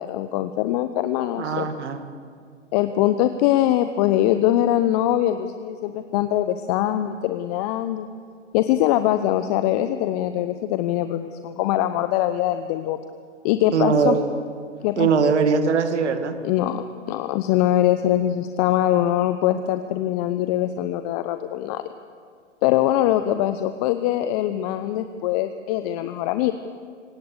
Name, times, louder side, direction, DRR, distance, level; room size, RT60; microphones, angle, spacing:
voice 1, 0.0-1.7 2.7-8.1 8.5-13.0 13.4-14.2 14.8-15.1 16.4-21.8 22.6-26.5, left 13 dB, 35° left, 10 dB, 0.8 m, -22 dB
voice 2, 1.4-2.0 13.7-14.2 15.0-16.3, right 5 dB, 65° right, 8 dB, 2.2 m, -21 dB
26.0 x 17.0 x 6.8 m, 2.1 s
figure-of-eight pair, 115°, 37 cm